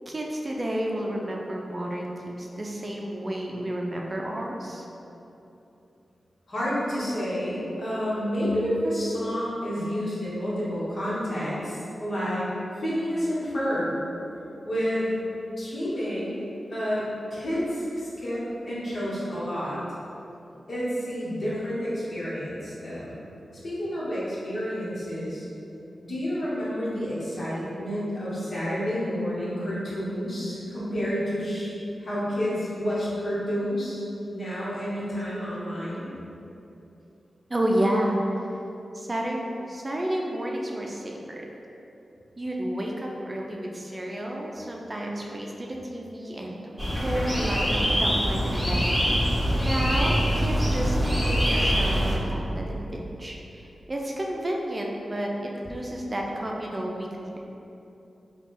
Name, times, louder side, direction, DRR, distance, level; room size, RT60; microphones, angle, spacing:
voice 1, 0.1-4.9 37.5-38.2 38.9-41.5 42.4-46.7 47.0-48.9 49.6-57.4, right 1 dB, 35° right, -1 dB, 0.5 m, -31 dB
voice 2, 6.5-12.5 12.8-14.0 14.6-15.1 15.6-16.4 16.7-19.8 20.7-23.2 23.6-25.5 26.0-31.7 32.0-36.1, equal, 60° left, -9 dB, 1.3 m, -29 dB
sound 1, 46.8-52.2, equal, 5° left, 1.3 m, -24 dB
3.4 x 2.4 x 4.3 m, 2.9 s
cardioid pair, 45°, 0 cm